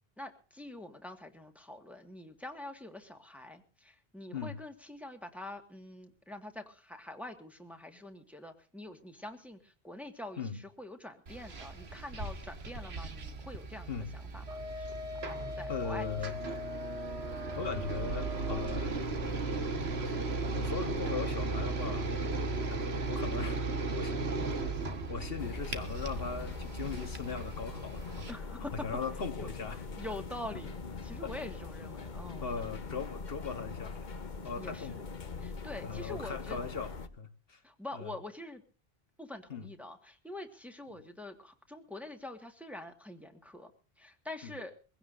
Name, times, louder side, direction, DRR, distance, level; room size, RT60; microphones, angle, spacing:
voice 1, 0.2-14.9 15.2-16.3 28.3-28.7 29.4-29.5 30.0-32.6 34.6-35.1 35.4-36.6 37.6-38.6 39.2-43.7 44.0-44.7, left 1 dB, ahead, 1.7 m, -45 dB
sound 1, 11.3-28.3, right 3 dB, 75° right, 1.7 m, -36 dB
Wind instrument woodwind instrument, 14.5-18.9, left 2 dB, 40° right, 0.9 m, -42 dB
voice 2, 15.7-16.3 17.5-19.1 20.0-20.1 20.5-22.1 22.7-22.8 23.1-23.6 23.9-24.1 25.1-28.3 28.8-29.8 32.4-34.1 34.4-35.1 35.8-37.6 37.9-38.1 39.5-39.7 40.9-41.0 44.4-44.5, left 5 dB, 65° left, 1.5 m, -39 dB
sound 2, 25.4-37.1, left 4 dB, 50° left, 1.1 m, -42 dB
23.0 x 16.5 x 2.6 m
omnidirectional pair, 1.1 m